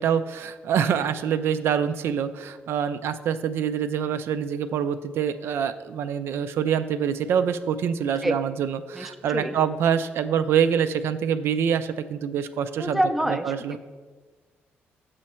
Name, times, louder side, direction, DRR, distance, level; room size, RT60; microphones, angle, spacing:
voice 1, 0.0-13.0 13.3-13.8, right 8 dB, 70° right, 11 dB, 0.4 m, -25 dB
voice 2, 8.9-9.5 12.8-13.5, equal, ahead, 5 dB, 0.4 m, -26 dB
6.9 x 6.2 x 4.3 m, 1.4 s
cardioid pair, 155°, 4 cm